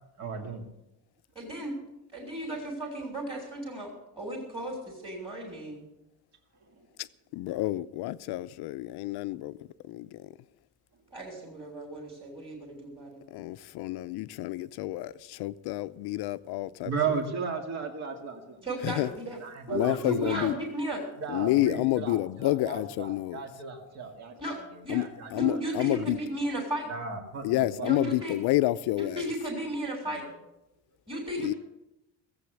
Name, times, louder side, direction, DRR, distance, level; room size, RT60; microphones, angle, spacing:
voice 1, 0.2-0.6 6.7-6.9 16.8-18.7 19.0-20.5 21.2-25.6 25.9-26.1 26.9-27.9 30.0-30.4, right 5 dB, 45° right, 2.3 m, -36 dB
voice 2, 1.3-1.8 2.1-3.9 4.2-5.8 11.1-13.2 18.6-19.4 19.7-21.0 24.4-24.6 24.8-25.0 25.3-26.9 27.8-28.3 29.0-30.2 31.1-31.5, right 1 dB, 10° right, 2.9 m, -35 dB
voice 3, 7.3-9.6 9.8-10.3 13.3-16.9 18.8-19.1 19.7-20.6 21.3-23.4 24.9-26.2 27.4-29.2 31.4-31.5, left 16 dB, 75° left, 0.7 m, -29 dB
17.0 x 7.9 x 7.9 m
cardioid pair, 175°, 39 cm